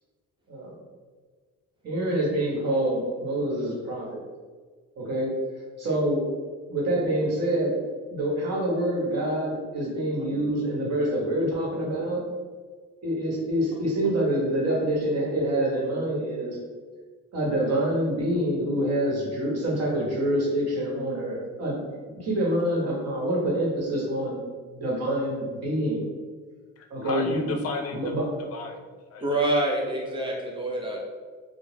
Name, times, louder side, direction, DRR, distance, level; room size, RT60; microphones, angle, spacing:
voice 1, 1.8-4.2 5.0-5.3 5.8-6.2 6.7-7.7 8.1-12.2 13.0-16.6 17.3-21.8 22.2-24.4 24.7-26.0 26.9-27.4 28.0-28.2, right 1 dB, 55° right, -4 dB, 1.1 m, -26 dB
voice 2, 26.8-28.0 28.5-29.4, left 4 dB, 55° left, 4 dB, 0.4 m, -34 dB
voice 3, 29.2-31.0, right 1 dB, 15° right, -2 dB, 0.7 m, -26 dB
2.4 x 2.0 x 3.3 m, 1.4 s
cardioid pair, 90°, 30 cm